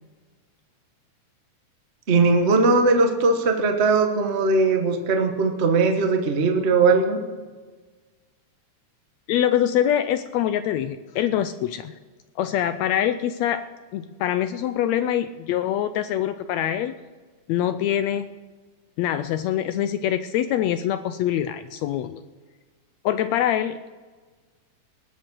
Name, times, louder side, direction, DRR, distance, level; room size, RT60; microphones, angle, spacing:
voice 1, 2.1-7.2, right 3 dB, 70° right, 3 dB, 0.6 m, -19 dB
voice 2, 9.3-12.0 12.4-13.6 13.9-17.0 17.5-18.3 19.0-22.2 23.0-23.9, left 11 dB, 80° left, 11 dB, 1.6 m, -24 dB
19.5 x 7.2 x 6.3 m, 1.4 s
omnidirectional pair, 3.6 m